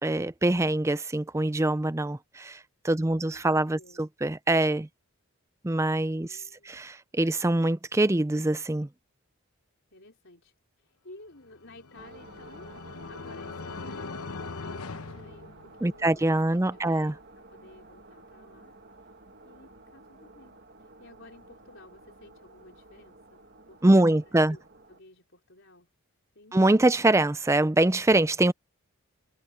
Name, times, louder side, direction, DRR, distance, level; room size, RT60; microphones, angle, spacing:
voice 1, 0.0-2.6 2.8-4.9 5.6-6.4 6.7-8.9 15.8-17.1 23.8-24.6 26.5-28.5, right 1 dB, 15° right, 0.4 m, -24 dB
voice 2, 3.0-4.0 6.1-6.9 9.9-18.7 19.0-19.1 19.4-25.9 26.3-26.5, left 2 dB, 55° left, 5.0 m, -54 dB
sound 1, 11.5-16.1, left 4 dB, 85° left, 1.0 m, -40 dB
sound 2, 11.9-25.0, right 2 dB, 50° right, 2.0 m, -52 dB
head